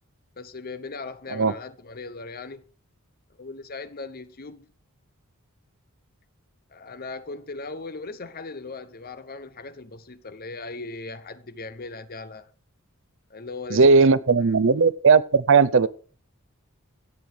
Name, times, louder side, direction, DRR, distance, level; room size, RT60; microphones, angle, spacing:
voice 1, 0.4-2.6 3.3-4.7 6.7-12.5 13.3-14.0 14.5-14.6, left 3 dB, 45° left, 0.9 m, -38 dB
voice 2, 13.7-15.9, right 4 dB, 60° right, 0.6 m, -17 dB
16.0 x 6.2 x 5.1 m
head